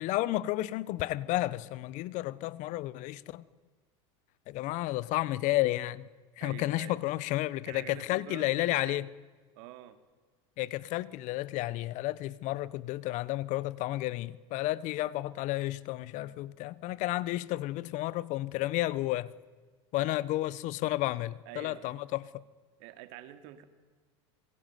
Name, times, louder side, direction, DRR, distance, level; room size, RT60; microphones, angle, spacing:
voice 1, 0.0-3.4 4.5-6.1 6.4-9.1 10.6-19.3 19.9-22.3, left 17 dB, 55° left, 1.3 m, -32 dB
voice 2, 6.4-7.0 7.7-9.0 9.5-10.0 20.0-20.2 21.4-22.0 22.8-23.6, right 13 dB, 65° right, 3.3 m, -47 dB
27.0 x 22.5 x 9.4 m
supercardioid pair, 110°, 15 cm